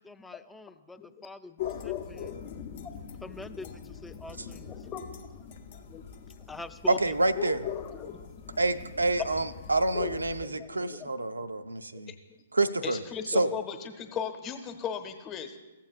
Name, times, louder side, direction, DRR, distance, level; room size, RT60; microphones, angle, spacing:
voice 1, 0.0-2.4 3.2-4.9 6.5-7.1, left 2 dB, 5° left, 9 dB, 0.3 m, -44 dB
sound 1, 1.6-10.5, left 9 dB, 50° left, 0.7 m, -40 dB
voice 2, 1.9-2.2 2.8-2.9 4.7-5.0 5.9-6.0 7.8-8.2 10.4-11.1 12.8-15.6, left 8 dB, 25° left, 5 dB, 0.9 m, -38 dB
voice 3, 6.9-7.7 8.6-12.1 12.5-13.0 13.3-13.5, right 2 dB, 90° right, 12 dB, 0.4 m, -27 dB
14.5 x 7.3 x 2.4 m, 1.1 s
hypercardioid pair, 125°, 0 cm